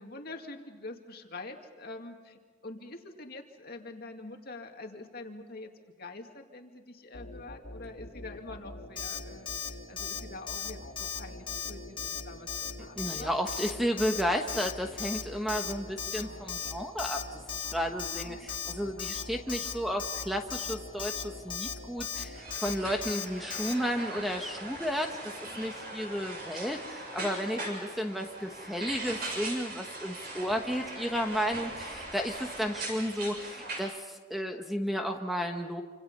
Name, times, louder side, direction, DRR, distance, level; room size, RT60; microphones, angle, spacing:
voice 1, 0.0-5.7 6.0-13.4 15.9-16.4 18.2-18.5 22.1-22.4 25.4-25.7 28.1-28.3, left 2 dB, 50° left, 3 dB, 2.3 m, -46 dB
sound 1, 7.1-23.8, left 1 dB, 75° left, 3.2 m, -46 dB
Alarm, 9.0-9.2 9.5-9.7 10.0-10.2 10.5-10.7 11.0-11.2 11.5-11.7 12.0-12.2 12.5-12.7 13.0-13.2 13.5-13.7 14.0-14.2 14.5-14.7 15.0-15.2 15.5-15.7 16.0-16.2 16.5-16.7 17.0-17.2 17.5-17.7 18.0-18.2 18.5-18.7 19.0-19.2 19.5-19.7 20.0-20.2 20.5-20.7 21.0-21.2 21.5-21.7 22.0-22.2 22.5-22.7 23.0-23.2 23.5-23.7, left 8 dB, 25° left, 1.7 m, -36 dB
voice 2, 13.0-35.8, equal, ahead, 3 dB, 1.2 m, -33 dB
sound 2, 22.3-33.8, right 2 dB, 50° right, 6.9 m, -40 dB
28.0 x 26.5 x 5.5 m, 1.4 s
head